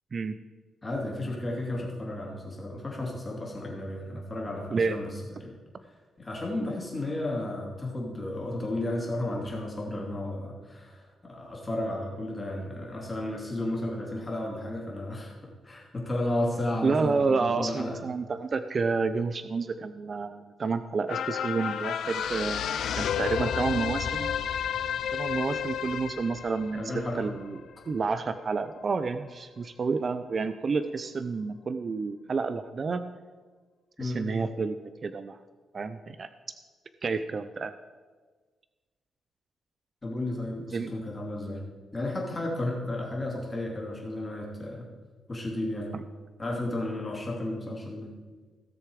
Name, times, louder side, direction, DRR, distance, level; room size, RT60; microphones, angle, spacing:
voice 1, 0.8-5.5 6.2-18.0 26.7-27.3 34.0-34.2 40.0-41.6 41.9-44.9 45.3-45.9 46.4-48.1, left 1 dB, 20° left, -2 dB, 2.7 m, -33 dB
voice 2, 16.8-22.7 23.0-24.4 25.1-27.6 27.9-33.0 34.0-35.4 35.7-36.3 37.0-37.7 40.7-40.9, right 4 dB, 40° right, 11 dB, 0.4 m, -30 dB
sound 1, 21.1-27.7 28.2-28.3, left 8 dB, 75° left, 0.4 m, -31 dB
17.0 x 6.7 x 4.7 m, 1.4 s
cardioid pair, 130°, 0 cm